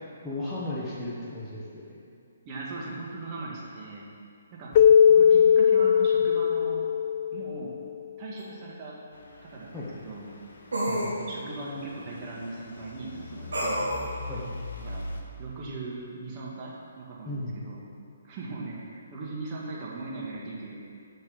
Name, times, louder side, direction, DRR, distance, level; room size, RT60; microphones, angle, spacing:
voice 1, 0.2-2.0 9.7-9.9 10.9-11.2 14.3-14.4 17.2-17.6, left 1 dB, ahead, -11 dB, 1.3 m, -35 dB
voice 2, 2.4-4.0 4.5-4.7 5.1-6.9 7.3-7.8 8.2-9.0 9.4-10.3 11.2-13.8 14.8-15.1 15.4-17.8 18.2-20.8, right 3 dB, 30° right, -4 dB, 2.0 m, -39 dB
Keyboard (musical), 4.8-8.0, left 8 dB, 40° left, 0.4 m, -20 dB
sound 1, 8.4-8.5 10.7-11.1 13.5-14.0, right 1 dB, 75° right, 2.1 m, -28 dB
Truck / Idling, 9.1-15.2, left 2 dB, 60° left, 1.2 m, -42 dB
7.6 x 5.5 x 6.8 m, 2.4 s
figure-of-eight pair, 135°, 0 cm